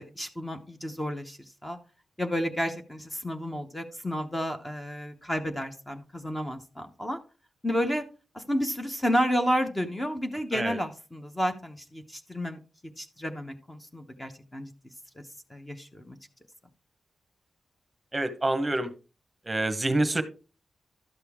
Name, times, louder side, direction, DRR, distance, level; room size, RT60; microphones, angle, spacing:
voice 1, 0.0-1.8 2.2-7.2 7.6-8.1 8.3-12.6 13.0-14.7 15.2-15.3 15.5-16.2, equal, 15° left, 6 dB, 0.8 m, -31 dB
voice 2, 18.1-18.9 19.5-20.2, right 2 dB, 20° right, 10 dB, 1.0 m, -26 dB
12.0 x 6.6 x 3.5 m, 0.33 s
wide cardioid pair, 120°, 0 cm